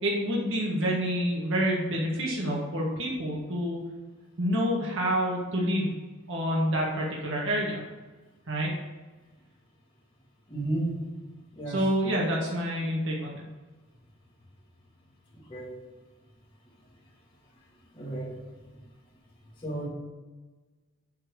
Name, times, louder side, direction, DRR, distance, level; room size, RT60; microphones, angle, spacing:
voice 1, 0.0-3.8 4.4-5.9 6.3-7.8 8.5-8.7 11.7-13.4, equal, 55° right, -3 dB, 1.7 m, -28 dB
voice 2, 10.5-10.9 11.5-11.9 15.5-15.7 17.9-18.3 19.6-19.9, right 2 dB, 20° left, -6 dB, 2.5 m, -32 dB
8.7 x 4.5 x 6.8 m, 1.2 s
head